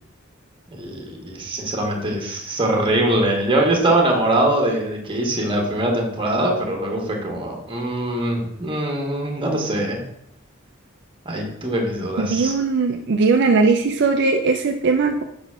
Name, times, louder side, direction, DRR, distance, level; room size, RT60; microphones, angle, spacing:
voice 1, 0.7-10.0 11.2-12.6, right 1 dB, 25° right, 1 dB, 1.4 m, -22 dB
voice 2, 12.2-15.2, right 4 dB, 55° right, 4 dB, 0.5 m, -19 dB
5.4 x 4.0 x 6.0 m, 0.78 s
head